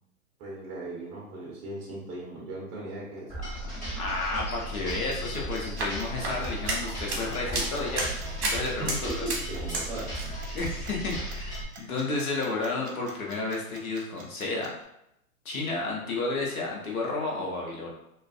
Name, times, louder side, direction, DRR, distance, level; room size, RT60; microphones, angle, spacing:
voice 1, 0.4-3.3 8.8-10.4 11.8-11.9, right 2 dB, 25° right, -4 dB, 0.7 m, -38 dB
voice 2, 3.3-8.1 8.4-9.3 10.5-14.7 15.4-17.9, left 3 dB, 70° left, -2 dB, 1.0 m, -32 dB
sound 1, 3.3-11.6, right 1 dB, 15° left, 1.2 m, -36 dB
sound 2, 4.9-14.8, right 4 dB, 60° right, 0.7 m, -49 dB
sound 3, 5.5-9.9 10.1-10.6, right 2 dB, 45° right, 1.0 m, -33 dB
2.4 x 2.4 x 2.4 m, 0.81 s
hypercardioid pair, 115°, 44 cm